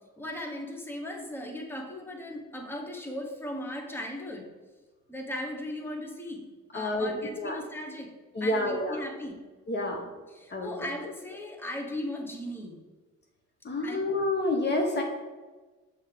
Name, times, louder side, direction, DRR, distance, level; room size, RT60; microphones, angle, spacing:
voice 1, 0.2-4.5 5.1-8.1 8.4-9.4 10.3-12.8 13.8-14.0, left 1 dB, 5° left, 1 dB, 1.1 m, -37 dB
voice 2, 6.7-7.1 7.4-7.6 8.3-9.0 9.7-10.1 10.5-10.7 13.6-15.0, left 2 dB, 35° left, 2 dB, 0.9 m, -28 dB
6.4 x 3.6 x 5.0 m, 1.3 s
cardioid pair, 90°, 30 cm